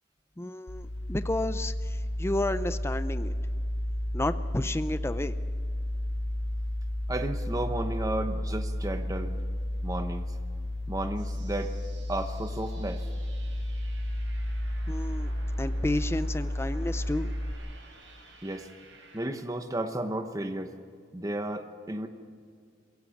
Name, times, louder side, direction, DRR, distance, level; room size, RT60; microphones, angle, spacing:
voice 1, 0.4-3.3 4.1-5.3 14.9-15.3 15.6-17.3, left 1 dB, 15° left, 12 dB, 0.5 m, -31 dB
sound 1, 0.7-17.5, left 1 dB, 85° left, 2.7 m, -32 dB
voice 2, 7.1-9.3 9.8-10.3 10.9-11.7 12.1-13.0 18.4-18.7 19.1-20.7 21.1-22.1, right 1 dB, 20° right, 7 dB, 1.0 m, -33 dB
sound 2, 11.2-19.3, right 2 dB, 85° right, 7.0 m, -53 dB
23.0 x 16.5 x 7.2 m, 2.2 s
head